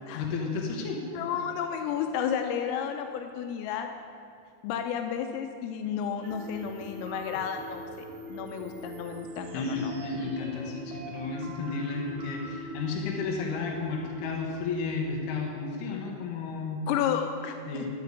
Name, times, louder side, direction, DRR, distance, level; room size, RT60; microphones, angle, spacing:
voice 1, 0.1-1.0 9.5-16.8 17.7-17.9, left 4 dB, 70° left, 0 dB, 2.5 m, -32 dB
voice 2, 1.1-3.9 4.6-7.8 8.3-9.9 16.9-17.9, left 8 dB, 85° left, 5 dB, 3.3 m, -32 dB
sound 1, 6.2-15.5, equal, 65° right, 1.6 m, -42 dB
13.5 x 6.9 x 8.2 m, 2.4 s
omnidirectional pair, 5.9 m